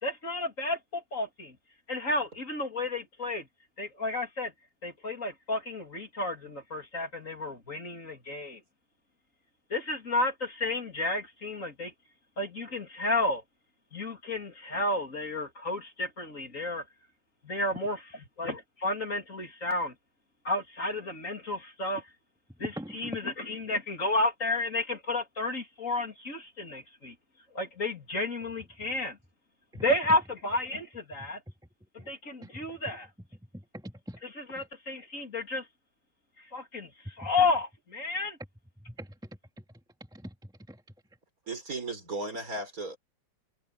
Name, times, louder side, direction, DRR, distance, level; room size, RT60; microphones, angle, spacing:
voice 1, 0.0-1.6 1.9-3.5 3.8-4.5 4.8-8.6 9.7-11.9 12.4-13.4 13.9-16.8 17.4-18.0 18.4-19.9 20.4-22.0 22.6-27.1 27.5-29.2 29.7-31.4 31.9-33.1 34.2-35.6 36.4-38.4, left 2 dB, 45° left, 3.4 m, -32 dB
voice 2, 22.6-23.2 29.7-29.8 31.2-31.3 32.0-32.1 32.4-32.7 33.5-34.2 34.6-34.7 37.2-37.3 38.8-39.2 39.6-39.7 40.1-40.8, equal, ahead, 2.5 m, -42 dB
voice 3, 41.5-43.0, right 2 dB, 50° right, 5.0 m, -35 dB
omnidirectional pair, 2.0 m